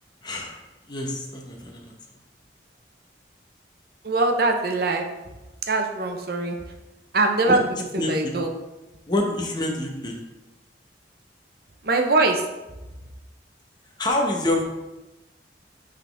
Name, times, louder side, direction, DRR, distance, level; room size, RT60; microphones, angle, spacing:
voice 1, 0.2-1.9 7.5-8.3 9.1-10.2 14.0-14.6, left 1 dB, 25° left, 0 dB, 1.0 m, -27 dB
voice 2, 4.0-5.0 5.7-6.6 7.1-7.6 7.9-8.5 11.8-12.4, right 2 dB, 60° right, 4 dB, 0.8 m, -22 dB
8.4 x 3.9 x 3.5 m, 1.0 s
head